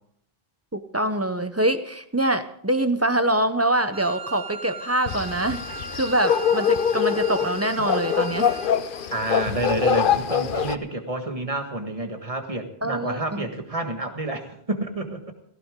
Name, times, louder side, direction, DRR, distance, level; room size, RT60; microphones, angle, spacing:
voice 1, 0.7-5.6 5.9-8.6 12.8-13.4, right 1 dB, 15° right, 10 dB, 0.7 m, -24 dB
Wind instrument woodwind instrument, 3.9-8.8, right 4 dB, 55° right, 1.3 m, -37 dB
sound 1, 5.1-10.8, left 8 dB, 60° left, 0.9 m, -24 dB
voice 2, 9.1-15.2, right 1 dB, 35° right, 5 dB, 1.8 m, -29 dB
17.5 x 15.5 x 3.8 m, 0.67 s
omnidirectional pair, 1.0 m